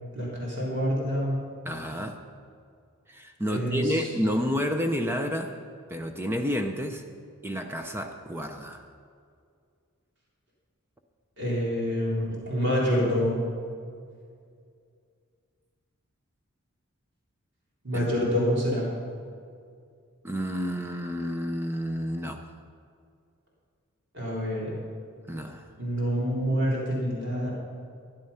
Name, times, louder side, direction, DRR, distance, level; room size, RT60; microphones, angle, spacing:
voice 1, 0.1-1.4 3.5-3.8 11.4-13.4 17.8-18.9 24.1-24.8 25.8-27.5, equal, 55° right, -5 dB, 3.6 m, -27 dB
voice 2, 1.6-2.2 3.1-5.6 5.9-7.0 7.4-8.8 17.9-18.1 20.2-22.4 25.3-25.7, equal, 10° right, 5 dB, 0.5 m, -30 dB
13.0 x 10.0 x 5.6 m, 2.3 s
head